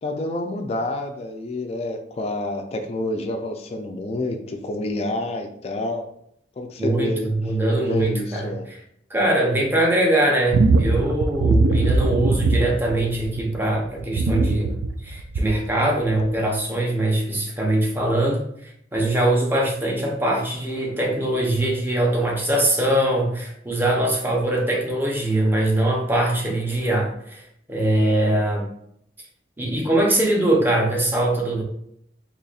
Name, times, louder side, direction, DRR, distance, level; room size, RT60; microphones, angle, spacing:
voice 1, 0.0-6.1 6.6-7.3 7.8-8.7, left 1 dB, 35° left, 3 dB, 0.3 m, -28 dB
voice 2, 6.8-8.5 9.1-27.4 27.7-28.7 29.6-31.6, right 1 dB, 10° right, -1 dB, 0.7 m, -22 dB
sound 1, 10.5-13.5 14.0-15.7 16.2-16.3, right 3 dB, 80° right, 0.4 m, -20 dB
4.0 x 2.9 x 2.4 m, 0.72 s
head